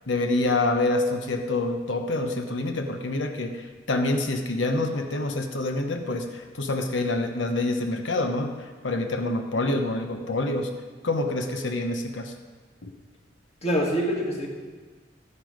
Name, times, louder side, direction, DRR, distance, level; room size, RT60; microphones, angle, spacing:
voice 1, 0.1-10.7 11.0-12.3 12.8-12.9, left 2 dB, 85° left, 4 dB, 0.9 m, -27 dB
voice 2, 13.6-14.5, equal, 35° left, -2 dB, 1.9 m, -26 dB
12.0 x 9.8 x 5.1 m, 1.4 s
head